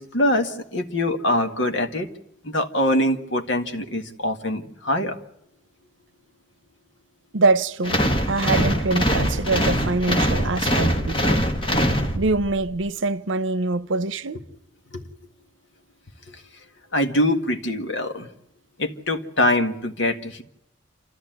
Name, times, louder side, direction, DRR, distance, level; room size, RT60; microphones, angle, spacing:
voice 1, 0.0-2.1 2.4-5.2 8.1-8.2 14.9-15.0 16.9-18.3 18.8-20.4, left 1 dB, 70° left, 1.8 m, -23 dB
voice 2, 7.3-8.0 8.3-11.4 12.2-14.4, right 3 dB, 75° right, 0.8 m, -24 dB
sound 1, 7.8-12.6, equal, 25° left, 1.8 m, -22 dB
27.5 x 14.0 x 9.1 m
head